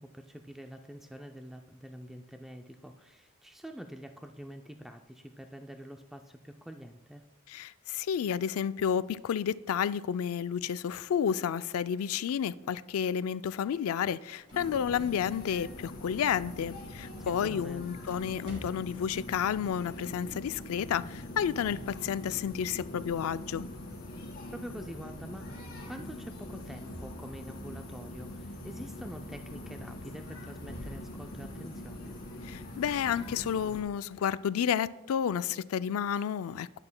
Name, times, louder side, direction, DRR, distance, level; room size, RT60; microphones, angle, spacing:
voice 1, 0.0-7.2 17.2-17.9 24.5-32.1, equal, ahead, 5 dB, 0.3 m, -46 dB
voice 2, 7.5-23.7 32.4-36.8, left 8 dB, 85° left, 15 dB, 0.3 m, -31 dB
sound 1, 13.9-19.2, equal, 25° right, 3.4 m, -55 dB
sound 2, 14.5-33.8, left 1 dB, 45° left, 2.2 m, -43 dB
10.5 x 10.5 x 2.2 m, 1.0 s
head